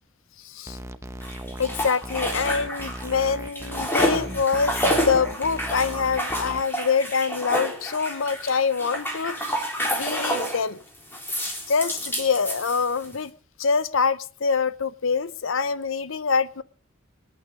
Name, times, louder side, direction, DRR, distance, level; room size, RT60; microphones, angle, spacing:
voice 1, 0.4-0.8 1.6-4.8 5.1-10.8 11.7-13.3 13.6-16.6, left 5 dB, 70° left, 16 dB, 0.7 m, -25 dB
sound 1, 0.7-6.6, right 1 dB, 15° right, 0.8 m, -37 dB
sound 2, 1.2-3.2 3.4-10.6 11.1-13.1, equal, 10° left, 3.7 m, -29 dB
25.0 x 9.4 x 4.8 m, 0.40 s
head